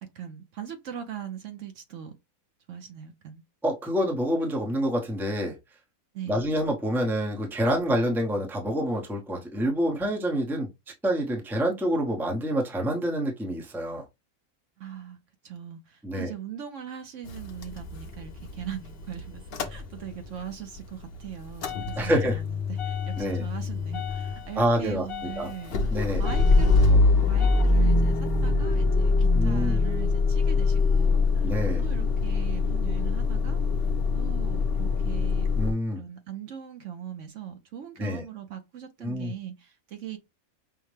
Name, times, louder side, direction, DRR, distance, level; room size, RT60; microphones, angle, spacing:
voice 1, 0.0-2.1 2.7-3.4 6.1-6.5 14.8-15.2 15.4-31.5 31.8-33.6 34.1-35.5 36.0-40.2, right 9 dB, 65° right, 0.9 m, -40 dB
voice 2, 3.6-5.6 6.3-10.7 11.0-14.0 16.0-16.3 22.0-22.4 23.2-23.5 24.6-25.5 25.9-26.2 29.3-29.8 31.4-31.9 35.6-36.0 38.0-38.2 39.0-39.3, equal, ahead, 0.7 m, -27 dB
Motor vehicle (road) / Engine starting / Idling, 17.3-20.4 20.7-35.7, left 3 dB, 55° left, 0.8 m, -24 dB
5.6 x 2.1 x 3.2 m
omnidirectional pair, 1.5 m